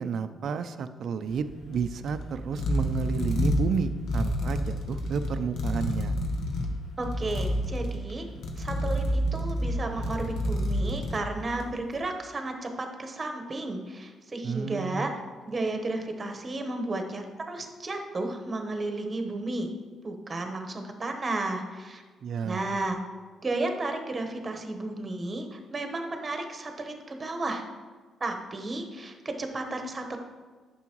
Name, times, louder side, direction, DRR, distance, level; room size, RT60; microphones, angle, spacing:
voice 1, 0.0-6.2 14.4-15.1 22.2-22.7, right 6 dB, 65° right, 11 dB, 0.4 m, -31 dB
sound 1, 1.3-11.9, equal, 70° left, 1.1 m, -29 dB
voice 2, 7.0-8.3 8.6-15.1 15.4-19.7 20.0-22.0 22.4-23.0 23.4-27.6 28.2-30.2, right 2 dB, 30° right, 4 dB, 1.0 m, -33 dB
9.3 x 6.2 x 3.0 m, 1.4 s
cardioid pair, 90°, 0 cm